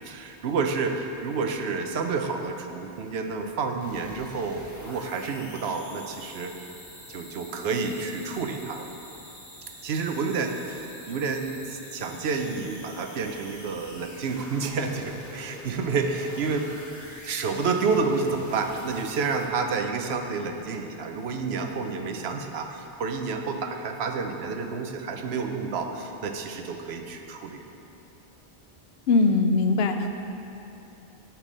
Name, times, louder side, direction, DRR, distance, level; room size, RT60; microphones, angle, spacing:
voice 1, 0.0-6.7 7.1-8.9 9.8-16.7 17.2-27.6, right 4 dB, 90° right, 5 dB, 0.9 m, -29 dB
sound 1, 3.8-19.7, left 1 dB, 15° left, 1.3 m, -46 dB
voice 2, 29.1-30.1, left 3 dB, 80° left, 7 dB, 0.8 m, -21 dB
6.8 x 5.9 x 7.3 m, 2.9 s
omnidirectional pair, 1.0 m